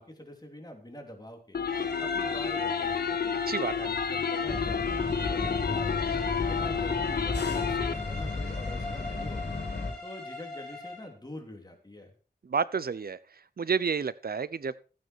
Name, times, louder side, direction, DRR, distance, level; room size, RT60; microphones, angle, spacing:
voice 1, 0.0-1.6 2.0-3.3 3.7-6.0 6.4-9.6 10.0-12.1, left 1 dB, 25° left, 3 dB, 3.1 m, -45 dB
sound 1, 1.5-7.9, left 6 dB, 65° left, 0.6 m, -30 dB
sound 2, 1.7-11.1, left 2 dB, 5° left, 4.9 m, -40 dB
voice 2, 3.5-3.9 12.4-13.2 13.6-14.8, right 6 dB, 60° right, 17 dB, 0.7 m, -30 dB
sound 3, 4.5-9.9, left 3 dB, 85° left, 3.3 m, -34 dB
14.5 x 9.3 x 4.6 m, 0.37 s
wide cardioid pair, 85°, 17 cm